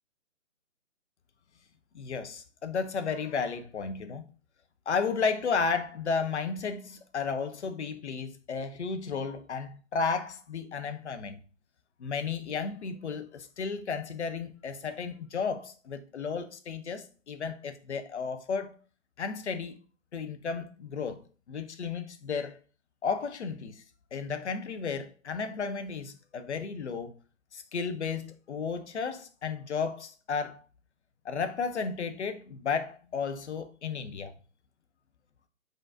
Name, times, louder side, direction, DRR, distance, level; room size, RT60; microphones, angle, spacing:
voice 1, 1.9-4.3 4.9-11.4 12.0-18.7 19.2-19.8 20.1-21.2 21.5-22.6 23.0-23.8 24.1-27.1 27.5-30.6 31.2-34.3, left 5 dB, 60° left, 0.7 m, -33 dB
5.2 x 3.7 x 2.5 m
figure-of-eight pair, 145°, 39 cm